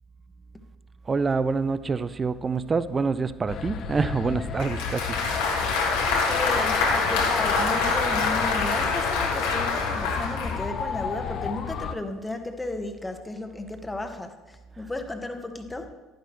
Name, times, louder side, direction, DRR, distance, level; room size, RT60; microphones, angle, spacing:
voice 1, 1.1-5.4, right 4 dB, 30° right, 0.5 m, -26 dB
sound 1, 3.5-11.9, left 6 dB, 50° left, 0.7 m, -33 dB
Applause, 4.6-10.6, left 4 dB, 75° left, 1.5 m, -25 dB
voice 2, 6.2-15.9, left 2 dB, 15° left, 1.3 m, -34 dB
sound 2, 7.6-9.8, right 5 dB, 70° right, 1.2 m, -39 dB
11.0 x 10.0 x 3.2 m
hypercardioid pair, 60°, 0 cm